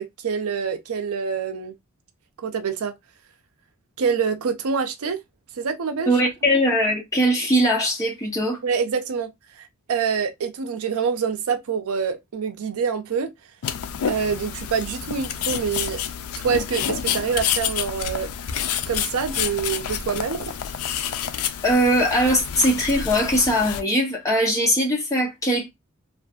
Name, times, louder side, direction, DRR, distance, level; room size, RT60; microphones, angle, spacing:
voice 1, 0.0-1.7 2.4-2.9 4.0-5.2 5.6-6.1 8.6-9.3 9.6-13.3 14.1-16.0 16.4-18.3 18.9-20.5, right 6 dB, 90° right, 0.5 m, -26 dB
voice 2, 6.1-8.6 21.6-25.7, equal, 15° left, 0.8 m, -20 dB
sound 1, 13.6-23.8, left 9 dB, 85° left, 0.3 m, -29 dB
2.5 x 2.4 x 2.2 m
head